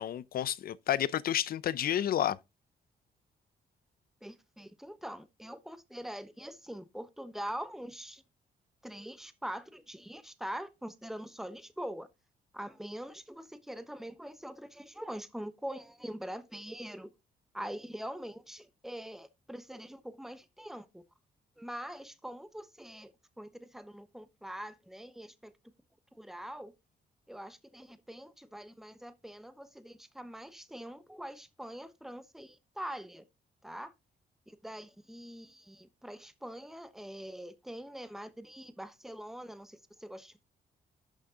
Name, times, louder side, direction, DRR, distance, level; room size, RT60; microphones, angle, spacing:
voice 1, 0.0-2.4, left 11 dB, 60° left, 0.6 m, -30 dB
voice 2, 4.2-8.2 8.8-12.1 12.5-17.1 17.5-21.0 21.6-25.5 26.1-26.7 27.3-33.2 33.6-33.9 34.5-40.4, equal, ahead, 1.0 m, -43 dB
11.5 x 6.5 x 3.7 m
cardioid pair, 125°, 17 cm